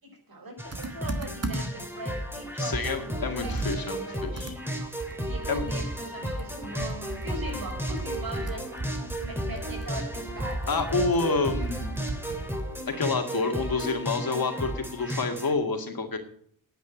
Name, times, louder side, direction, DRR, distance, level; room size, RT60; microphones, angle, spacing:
voice 1, 0.0-4.3 5.2-10.8, right 2 dB, 75° right, 2 dB, 5.1 m, -40 dB
sound 1, 0.6-15.5, equal, 5° right, 2.7 m, -34 dB
Computer keyboard, 0.7-1.9 2.3-2.4 2.7-6.0 6.3-12.7, right 2 dB, 45° right, 1.8 m, -36 dB
voice 2, 2.6-4.5 5.5-5.7 10.7-12.0 12.9-16.2, left 3 dB, 75° left, 5 dB, 2.1 m, -28 dB
9.9 x 9.2 x 8.9 m, 0.62 s
wide cardioid pair, 95°, 36 cm